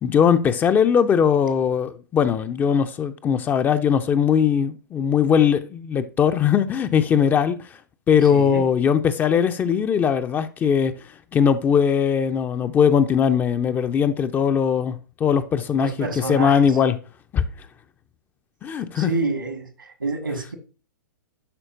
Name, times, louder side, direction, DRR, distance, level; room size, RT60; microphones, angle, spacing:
voice 1, 0.0-7.6 8.1-15.9 16.3-17.0 17.3-17.4 18.6-19.1, left 7 dB, 15° left, 0.4 m, -20 dB
voice 2, 8.2-8.7 15.8-16.6 19.0-20.5, right 3 dB, 80° right, 1.8 m, -28 dB
11.0 x 4.2 x 2.5 m
figure-of-eight pair, 110°, 11 cm